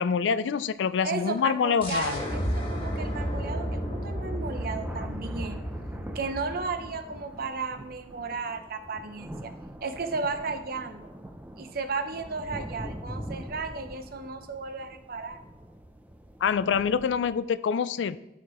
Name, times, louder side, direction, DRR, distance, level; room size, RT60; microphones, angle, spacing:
voice 1, 0.0-2.2 16.4-18.2, left 6 dB, 80° left, 16 dB, 0.4 m, -26 dB
sound 1, 0.8-0.9 1.6-1.7 2.9-3.0 3.3-17.4, equal, 10° right, 0.5 m, -44 dB
voice 2, 1.0-5.7 6.1-9.5 9.8-11.1 11.6-15.4, right 4 dB, 55° right, 8 dB, 0.7 m, -34 dB
sound 2, 1.8-7.3, equal, 30° left, 1.9 m, -32 dB
12.5 x 4.8 x 3.0 m, 0.93 s
head